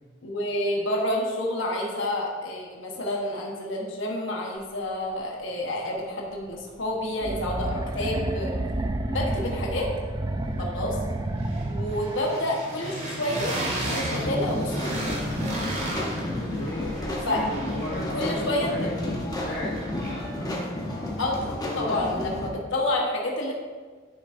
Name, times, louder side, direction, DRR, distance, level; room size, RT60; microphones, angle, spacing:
voice 1, 0.2-8.5 9.1-9.9 10.6-11.0 11.7-13.5 13.8-15.2 17.3-17.4 18.1-18.7 21.2-21.5 21.7-23.5, left 1 dB, 70° left, -2 dB, 1.2 m, -29 dB
sound 1, 6.5-6.6 6.8-8.0 8.2-20.4, right 1 dB, 35° right, 1.7 m, -36 dB
sound 2, 7.2-12.4, right 1 dB, 20° right, 0.4 m, -30 dB
voice 2, 9.1-9.4 16.3-20.7 21.4-22.1, left 1 dB, 50° left, -7 dB, 1.1 m, -36 dB
sound 3, 14.1-22.5, left 1 dB, 20° left, 1.0 m, -31 dB
10.0 x 6.1 x 2.6 m, 1.5 s
head